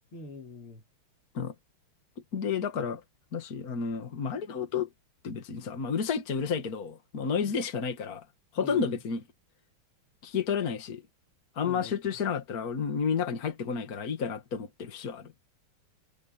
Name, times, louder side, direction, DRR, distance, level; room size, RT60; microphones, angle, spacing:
voice 1, 0.1-0.8 7.4-7.6 8.6-9.0 11.6-11.9, left 4 dB, 90° left, 4.3 m, -43 dB
voice 2, 2.3-3.0 3.3-4.9 5.2-8.3 8.5-9.2 10.2-11.0 11.6-15.3, left 6 dB, 45° left, 2.2 m, -31 dB
omnidirectional pair, 2.3 m